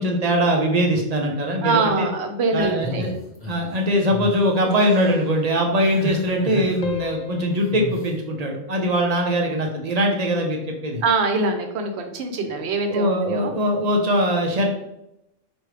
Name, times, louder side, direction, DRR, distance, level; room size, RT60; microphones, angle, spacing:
voice 1, 0.0-2.1 2.5-3.1 3.5-11.0 12.9-14.8, equal, 50° right, 2 dB, 0.4 m, -21 dB
voice 2, 1.6-3.0 8.8-9.0 11.0-13.5, right 3 dB, 70° right, 5 dB, 0.9 m, -24 dB
sound 1, 2.8-3.7 4.1-4.3 4.7-5.2 5.8-6.8 7.7-8.1, equal, 15° left, 0.9 m, -32 dB
sound 2, 4.6-6.5 6.8-9.4 9.8-10.2, left 7 dB, 55° left, 0.5 m, -38 dB
4.6 x 2.6 x 3.2 m, 0.85 s
omnidirectional pair, 1.2 m